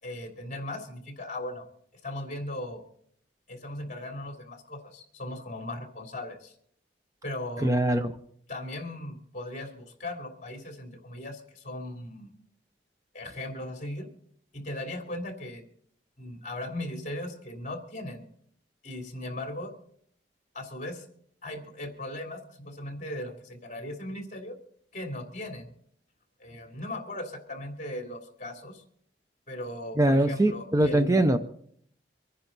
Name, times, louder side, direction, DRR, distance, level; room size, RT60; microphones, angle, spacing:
voice 1, 0.0-1.7 2.0-2.8 3.5-6.5 7.2-7.7 8.5-12.3 13.1-14.1 14.5-15.7 16.2-18.2 18.8-19.7 20.5-21.1 21.4-24.6 24.9-25.7 26.4-28.8 29.5-31.2, left 1 dB, 45° left, 3 dB, 3.0 m, -38 dB
voice 2, 7.6-8.1 30.0-31.4, right 1 dB, 20° right, 8 dB, 0.7 m, -22 dB
25.5 x 10.0 x 4.0 m, 0.65 s
head